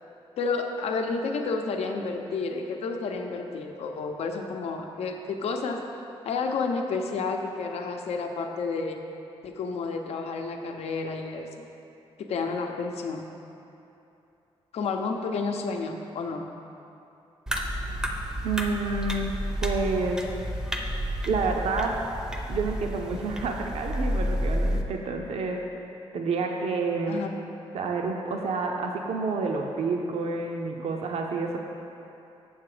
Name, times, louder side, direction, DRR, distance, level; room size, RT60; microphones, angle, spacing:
voice 1, 0.4-5.8 6.2-9.0 9.4-11.6 12.2-13.3 14.7-16.5 27.1-27.3, left 4 dB, 85° left, 3 dB, 0.7 m, -30 dB
sound 1, 17.5-24.8, equal, 5° right, 0.5 m, -30 dB
voice 2, 18.4-19.3 19.6-20.2 21.3-21.9 22.5-25.6 26.1-27.3 27.7-31.6, right 4 dB, 75° right, 2 dB, 0.6 m, -29 dB
7.3 x 6.9 x 4.9 m, 2.8 s
wide cardioid pair, 160°, 11 cm